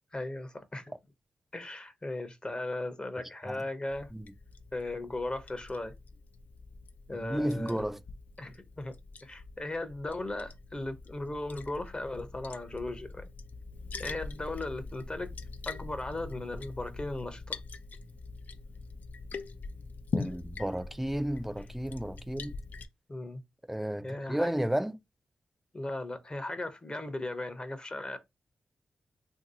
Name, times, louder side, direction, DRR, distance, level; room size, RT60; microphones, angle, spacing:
voice 1, 0.1-0.9 1.5-4.1 4.7-5.9 7.1-7.8 8.4-8.9 9.2-13.2 14.0-15.3 15.6-17.6 23.1-23.4 24.0-24.5 25.7-28.2, left 2 dB, 30° left, 0.7 m, -37 dB
Liquid, 3.9-22.8, left 4 dB, 60° left, 0.4 m, -43 dB
voice 2, 7.1-8.0 20.1-22.5 23.7-24.9, right 1 dB, 5° right, 0.4 m, -32 dB
2.8 x 2.7 x 2.7 m
cardioid pair, 50°, 3 cm